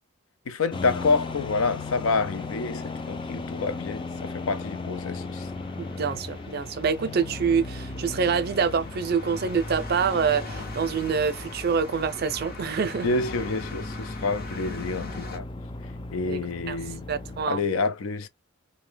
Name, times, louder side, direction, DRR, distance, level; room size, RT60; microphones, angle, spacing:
voice 1, 0.5-5.5 13.0-15.5 16.1-17.0 17.5-18.3, left 4 dB, 85° left, 0.5 m, -28 dB
sound 1, 0.6-15.4, left 2 dB, 45° left, 0.8 m, -41 dB
sound 2, 0.7-17.5, left 3 dB, 25° left, 0.4 m, -37 dB
voice 2, 5.8-13.1 16.2-16.8 17.1-17.7, right 6 dB, 50° right, 0.4 m, -26 dB
2.7 x 2.2 x 3.3 m
head